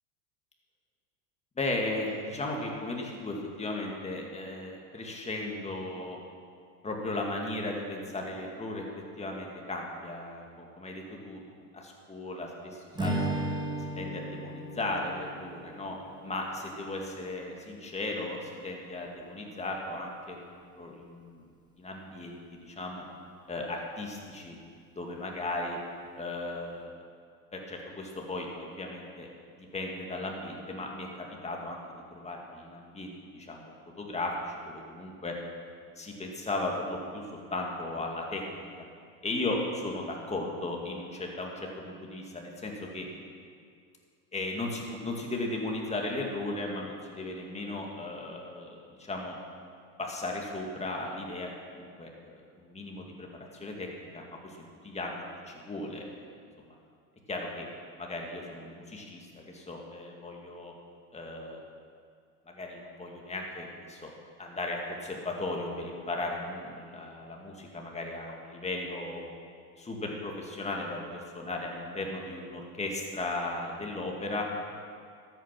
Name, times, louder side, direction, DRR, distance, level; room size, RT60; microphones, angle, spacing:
voice 1, 1.6-6.2 6.8-8.8 9.2-11.4 11.7-13.4 13.8-16.0 16.2-21.4 21.8-23.0 23.5-24.6 25.0-25.8 26.2-26.9 27.5-29.3 29.6-31.8 32.1-35.3 36.0-38.7 39.2-43.1 44.3-49.3 50.0-53.9 54.1-54.6 54.8-56.3 56.6-56.8 57.3-57.7 58.0-60.7 61.1-61.6 62.5-64.1 64.4-69.3 69.8-74.5, left 2 dB, 15° left, 0 dB, 2.2 m, -36 dB
Strum, 12.9-17.4, right 1 dB, 10° right, 1.5 m, -36 dB
13.0 x 9.0 x 6.0 m, 2.2 s
hypercardioid pair, 105°, 46 cm